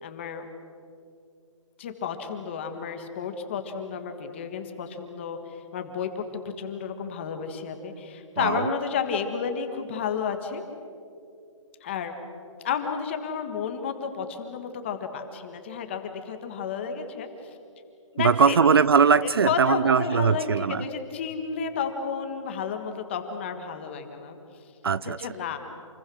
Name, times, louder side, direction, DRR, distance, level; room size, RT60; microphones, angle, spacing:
voice 1, 0.0-0.5 1.8-6.2 6.6-10.6 11.8-12.1 12.6-17.3 18.1-18.6 19.2-24.4 25.2-25.6, left 6 dB, 20° left, 6 dB, 1.6 m, -31 dB
voice 2, 8.4-8.7 18.2-20.8 24.8-25.2, right 6 dB, 50° right, 17 dB, 0.5 m, -21 dB
28.5 x 21.5 x 6.4 m, 2.5 s
hypercardioid pair, 175°, 16 cm